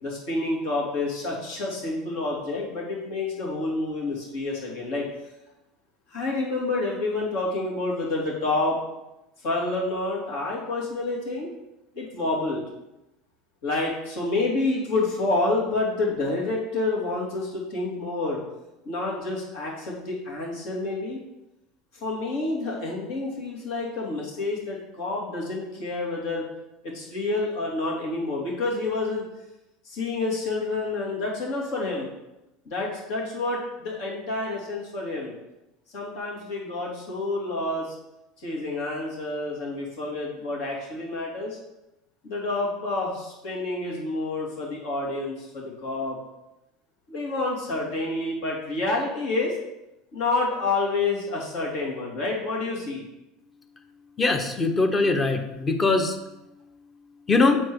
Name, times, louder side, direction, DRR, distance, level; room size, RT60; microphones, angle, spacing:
voice 1, 0.0-5.1 6.1-8.8 9.4-11.5 11.9-12.6 13.6-18.4 18.8-21.2 21.9-26.4 26.8-29.2 29.8-32.1 32.6-35.3 35.9-37.9 38.4-41.6 42.2-46.2 47.1-49.6 50.1-53.0, left 2 dB, 70° left, -3 dB, 2.8 m, -28 dB
voice 2, 54.2-56.2 57.3-57.6, left 3 dB, 25° left, 6 dB, 1.0 m, -21 dB
7.3 x 4.6 x 4.8 m, 0.94 s
supercardioid pair, 95°, 0 cm